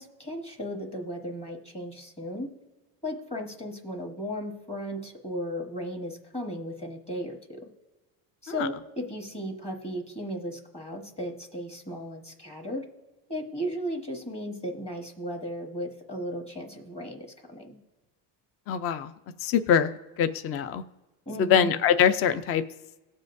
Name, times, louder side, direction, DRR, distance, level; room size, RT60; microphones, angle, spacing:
voice 1, 0.0-2.5 3.0-7.7 8.4-12.8 13.3-17.8 21.3-21.8, equal, 15° left, 3 dB, 1.1 m, -35 dB
voice 2, 18.7-19.1 19.4-19.9 20.2-20.8 21.4-22.6, left 8 dB, 35° left, 11 dB, 0.4 m, -23 dB
18.5 x 7.5 x 2.6 m, 1.1 s
cardioid pair, 155°, 42 cm